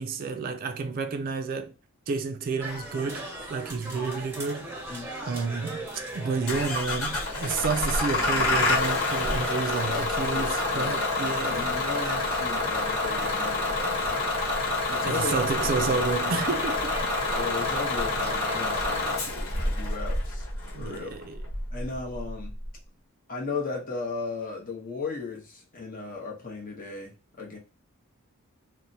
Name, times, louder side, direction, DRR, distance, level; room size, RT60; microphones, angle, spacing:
voice 1, 0.0-1.7 2.1-4.7 5.2-5.9 6.1-12.2 15.0-16.9 19.3-19.7 20.7-21.5, right 4 dB, 40° right, 0.3 m, -30 dB
sound 1, 2.6-19.2, right 1 dB, 10° right, 0.8 m, -40 dB
Bus / Engine starting, 6.5-22.7, left 2 dB, 70° left, 1.1 m, -28 dB
voice 2, 9.9-14.3 14.9-15.3 15.8-16.0 17.3-20.5 20.8-21.1 21.7-22.5 23.3-27.6, left 4 dB, 40° left, 0.8 m, -36 dB
3.1 x 2.1 x 2.6 m
head